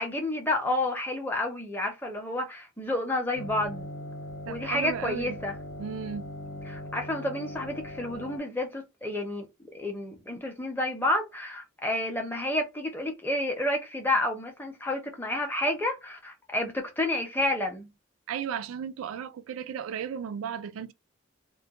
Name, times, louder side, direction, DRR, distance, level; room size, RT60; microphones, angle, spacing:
voice 1, 0.0-3.9 4.5-5.5 6.7-9.5 9.7-17.9, left 1 dB, 10° left, 0.5 m, -30 dB
sound 1, 3.4-8.4, left 1 dB, 60° left, 0.5 m, -40 dB
voice 2, 4.5-5.4 5.8-6.3 18.3-20.9, right 8 dB, 90° right, 0.3 m, -35 dB
2.2 x 2.1 x 2.8 m
head